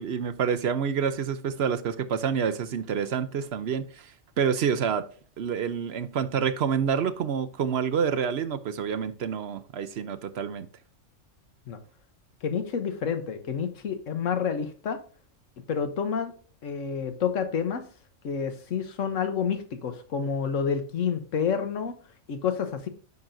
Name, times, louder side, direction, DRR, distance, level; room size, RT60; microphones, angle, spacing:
voice 1, 0.0-5.0 5.4-10.7, right 7 dB, 60° right, 0.8 m, -28 dB
voice 2, 12.4-15.0 15.7-16.3 16.6-17.8 18.2-22.0 22.3-22.9, left 6 dB, 90° left, 1.3 m, -29 dB
9.3 x 6.0 x 2.6 m
omnidirectional pair, 1.3 m